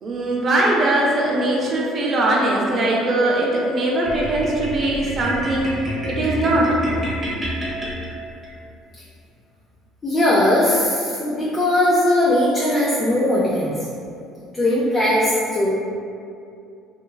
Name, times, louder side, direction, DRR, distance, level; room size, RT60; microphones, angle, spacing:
voice 1, 0.0-5.8 6.1-6.8, right 1 dB, 35° right, -3 dB, 0.5 m, -20 dB
sound 1, 4.0-8.5, equal, 20° right, 0.8 m, -29 dB
voice 2, 10.0-13.7 14.5-15.8, left 1 dB, 20° left, -6 dB, 0.4 m, -19 dB
2.9 x 2.4 x 2.2 m, 2.5 s
cardioid pair, 115°, 0 cm